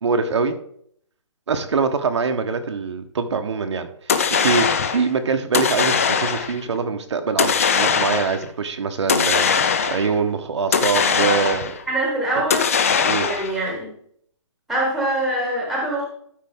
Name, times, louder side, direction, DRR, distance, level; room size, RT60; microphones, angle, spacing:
voice 1, 0.0-0.6 1.5-11.8 13.0-13.3, right 5 dB, 65° right, 6 dB, 1.0 m, -24 dB
sound 1, 4.1-5.1 5.5-6.6 7.4-8.4 9.1-10.2 10.7-11.8 12.5-13.6, left 6 dB, 30° left, 0.5 m, -20 dB
voice 2, 11.9-12.7 13.0-13.9 14.7-16.1, right 1 dB, ahead, -2 dB, 1.2 m, -24 dB
12.0 x 5.2 x 3.6 m, 0.65 s
hypercardioid pair, 170°, 16 cm